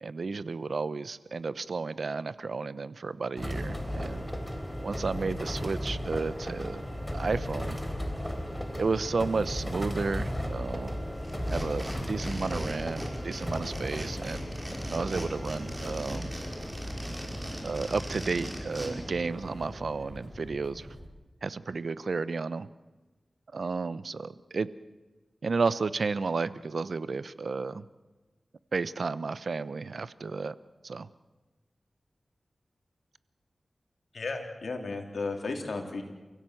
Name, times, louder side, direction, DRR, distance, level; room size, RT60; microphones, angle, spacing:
voice 1, 0.0-4.3 4.8-6.8 7.1-7.8 8.8-11.0 11.5-14.4 14.8-16.3 17.6-20.9 21.4-22.7 23.5-24.7 25.4-27.9 28.7-30.6 30.8-31.1, right 4 dB, 70° right, 16 dB, 0.8 m, -32 dB
sound 1, 3.4-21.1, equal, 5° left, 3.6 m, -36 dB
sound 2, 11.2-18.9, right 1 dB, 20° right, 5.5 m, -40 dB
voice 2, 34.1-36.0, left 3 dB, 80° left, 3 dB, 3.7 m, -34 dB
29.5 x 16.5 x 7.9 m, 1.2 s
wide cardioid pair, 75°, 0 cm